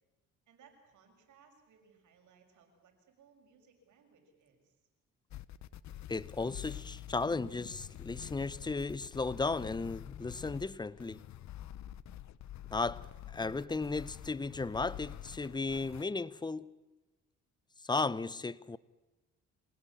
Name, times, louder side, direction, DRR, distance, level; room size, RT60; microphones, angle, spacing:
voice 1, 0.5-4.7, right 6 dB, 75° right, 6.5 m, -64 dB
sound 1, 5.3-16.0, left 12 dB, 65° left, 1.0 m, -47 dB
voice 2, 6.1-11.2 12.7-16.7 17.8-18.8, left 3 dB, 15° left, 0.8 m, -35 dB
26.0 x 18.0 x 8.5 m
cardioid pair, 90°, 30 cm